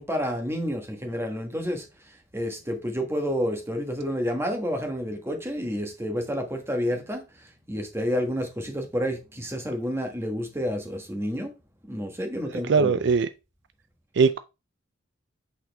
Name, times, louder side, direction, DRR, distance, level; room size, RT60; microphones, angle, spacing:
voice 1, 0.0-1.8 2.3-7.3 7.7-11.5 11.9-13.0, equal, 15° right, 1.4 m, -29 dB
voice 2, 12.7-13.3 14.2-14.4, right 5 dB, 60° right, 0.4 m, -20 dB
8.1 x 4.3 x 3.5 m
head